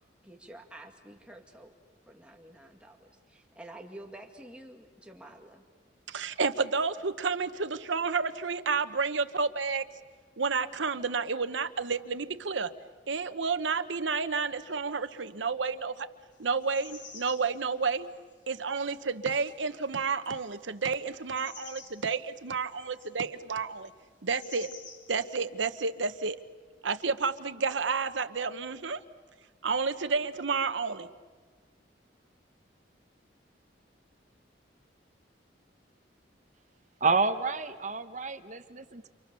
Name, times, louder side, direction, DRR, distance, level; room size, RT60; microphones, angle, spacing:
voice 1, 0.2-1.7 2.1-5.6, right 1 dB, 5° right, 2.0 m, -49 dB
voice 2, 6.1-9.9 10.4-12.7 13.1-16.1 16.4-18.1 18.5-23.9 24.2-24.7 25.1-26.4 26.8-29.0 29.6-31.1, right 4 dB, 90° right, 1.0 m, -30 dB
sound 1, 16.4-17.6 17.9-18.3 19.2-19.6 20.2-20.7 21.3-22.1 22.5-23.1 24.3-25.1 25.6-25.8, left 5 dB, 80° left, 3.0 m, -49 dB
voice 3, 37.0-39.1, right 4 dB, 40° right, 1.2 m, -29 dB
29.5 x 28.0 x 6.9 m
head